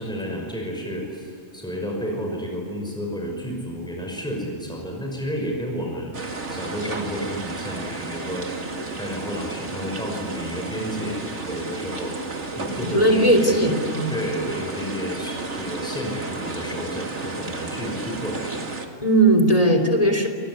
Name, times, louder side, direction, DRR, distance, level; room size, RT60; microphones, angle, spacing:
voice 1, 0.0-6.2 6.5-12.2 12.5-13.6 14.1-18.6, equal, 5° left, 0 dB, 5.8 m, -31 dB
sound 1, 6.1-18.9, right 3 dB, 60° right, 2.5 m, -32 dB
voice 2, 12.9-14.1 19.0-20.3, right 1 dB, 25° left, 3 dB, 3.5 m, -18 dB
28.5 x 20.5 x 9.7 m, 2.4 s
omnidirectional pair, 1.3 m